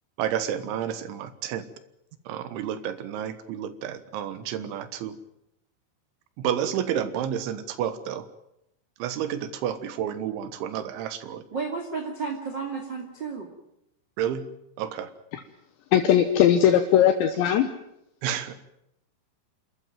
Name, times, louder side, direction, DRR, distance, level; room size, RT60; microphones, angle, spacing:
voice 1, 0.2-1.7 2.3-5.2 6.4-8.3 9.0-11.4 14.2-14.4 14.8-15.1 18.2-18.5, right 9 dB, 75° right, 12 dB, 3.6 m, -30 dB
voice 2, 11.5-13.5, right 4 dB, 35° right, 2 dB, 1.9 m, -32 dB
voice 3, 15.9-17.7, left 10 dB, 75° left, 6 dB, 3.2 m, -19 dB
27.5 x 13.5 x 9.2 m, 0.81 s
omnidirectional pair, 5.6 m